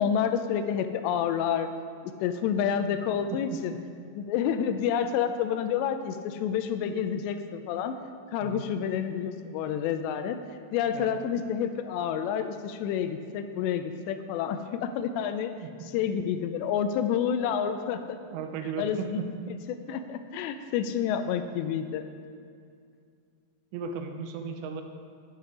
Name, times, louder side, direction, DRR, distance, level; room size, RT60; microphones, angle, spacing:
voice 1, 0.0-1.7 2.0-3.8 4.2-8.0 8.3-10.4 10.7-15.5 15.9-18.2 18.8-19.2 19.7-22.1, left 8 dB, 85° left, 9 dB, 2.7 m, -29 dB
voice 2, 3.3-3.6 8.4-8.6 10.9-11.1 15.6-15.7 18.3-19.3 23.7-24.8, right 6 dB, 85° right, 6 dB, 3.0 m, -36 dB
9.7 x 9.6 x 4.9 m, 2.3 s
omnidirectional pair, 5.1 m